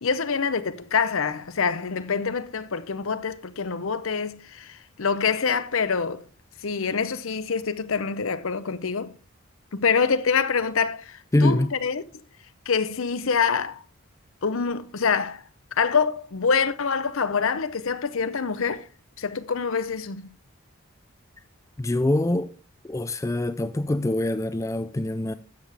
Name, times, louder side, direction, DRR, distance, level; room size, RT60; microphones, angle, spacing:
voice 1, 0.0-6.2 6.6-9.1 9.7-12.0 12.7-13.8 14.4-15.4 15.7-18.9 19.2-20.3, left 5 dB, 65° left, 0.7 m, -25 dB
voice 2, 11.3-11.7 21.8-22.5 22.8-25.3, left 1 dB, 15° left, 0.4 m, -24 dB
13.0 x 7.3 x 3.4 m
head